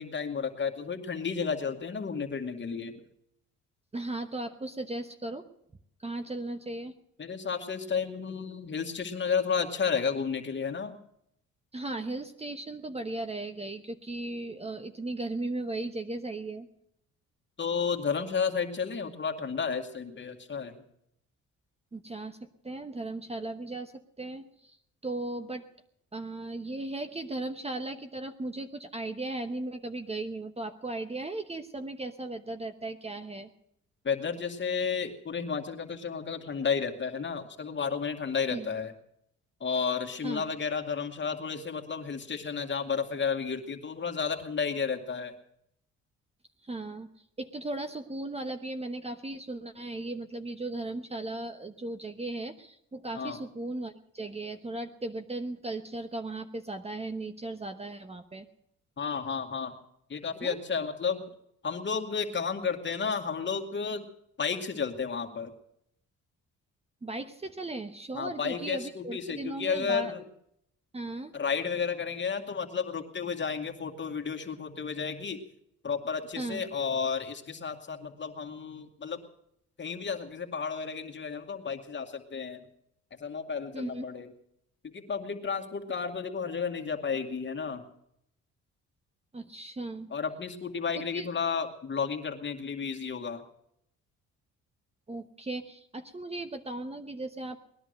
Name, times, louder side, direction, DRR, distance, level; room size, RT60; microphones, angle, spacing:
voice 1, 0.0-3.0 7.2-10.9 17.6-20.8 34.0-38.9 39.6-45.3 53.1-53.4 59.0-59.7 60.1-61.2 61.6-64.0 64.4-65.5 68.1-70.2 71.3-75.4 75.8-79.2 79.8-82.7 83.2-84.3 84.8-87.9 90.1-93.4, left 6 dB, 35° left, 4 dB, 2.2 m, -32 dB
voice 2, 3.9-5.5 6.0-6.9 11.7-16.7 21.9-22.4 22.6-24.8 25.0-25.7 26.1-33.5 38.5-38.7 40.2-40.5 46.6-47.1 47.4-58.5 60.4-60.6 67.0-70.1 70.9-71.3 76.4-76.6 83.7-84.1 89.3-90.1 91.1-91.3 95.1-97.6, right 2 dB, 20° right, 8 dB, 1.1 m, -37 dB
19.5 x 11.0 x 6.6 m, 0.74 s
cardioid pair, 90°, 30 cm